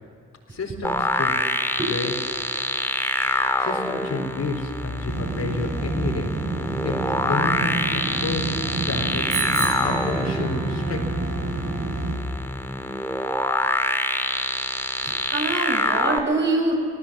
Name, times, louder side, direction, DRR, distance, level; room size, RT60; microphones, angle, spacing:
voice 1, 0.5-1.4 1.9-2.1 3.6-6.3 6.8-6.9 7.2-9.3 9.7-11.1 11.5-11.6, left 3 dB, 40° left, 2 dB, 4.3 m, -30 dB
sound 1, 0.8-16.2, left 1 dB, 5° left, 2.7 m, -26 dB
sound 2, 5.1-12.2, right 3 dB, 50° right, 7.0 m, -29 dB
Bicycle bell, 9.3-10.8, right 5 dB, 70° right, 6.6 m, -31 dB
voice 2, 15.0-16.8, right 2 dB, 30° right, 0 dB, 5.7 m, -25 dB
26.0 x 19.0 x 7.7 m, 2.6 s
figure-of-eight pair, 45°, 39 cm